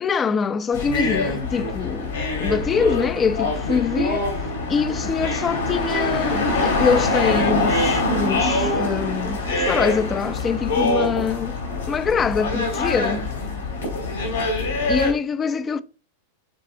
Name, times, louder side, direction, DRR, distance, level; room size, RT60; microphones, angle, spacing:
voice 1, 0.0-4.3 4.7-11.6 11.9-13.3 14.9-15.8, left 6 dB, 20° left, 0.6 m, -24 dB
sound 1, 0.7-15.1, left 2 dB, 65° left, 3.3 m, -24 dB
11.5 x 4.1 x 2.7 m
figure-of-eight pair, 90°, 0 cm